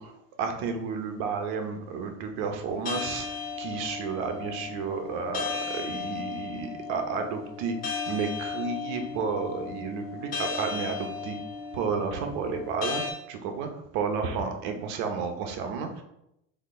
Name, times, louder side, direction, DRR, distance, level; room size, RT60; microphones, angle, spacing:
voice 1, 0.0-3.3 3.6-7.8 8.1-11.4 11.7-16.0, right 5 dB, 70° right, 5 dB, 0.9 m, -32 dB
sound 1, 2.9-13.1, left 5 dB, 25° left, 1.2 m, -35 dB
4.3 x 2.9 x 4.2 m, 0.81 s
cardioid pair, 150°, 30 cm